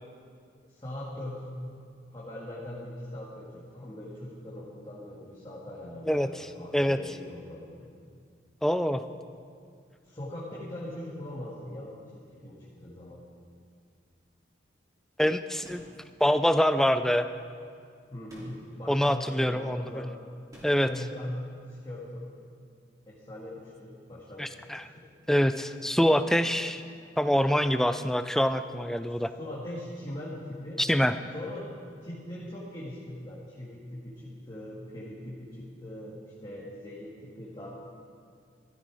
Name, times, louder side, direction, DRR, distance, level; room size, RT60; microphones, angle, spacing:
voice 1, 0.6-1.5 2.1-7.9 10.0-13.2 18.1-20.1 20.9-21.3 21.7-22.3 23.1-24.7 24.9-25.1 29.0-30.8 31.3-31.6 32.0-37.7, left 1 dB, 25° left, -7 dB, 2.0 m, -40 dB
voice 2, 6.1-6.5 6.7-7.0 8.6-9.0 15.2-15.8 16.2-17.3 18.9-20.0 20.6-20.9 24.4-24.8 25.3-26.8 27.2-29.3 30.8-31.1, equal, ahead, 10 dB, 0.3 m, -25 dB
sound 1, 15.6-16.1 18.3-18.8 20.5-21.0, equal, 20° right, 2.9 m, -50 dB
14.5 x 13.0 x 4.9 m, 2.2 s
head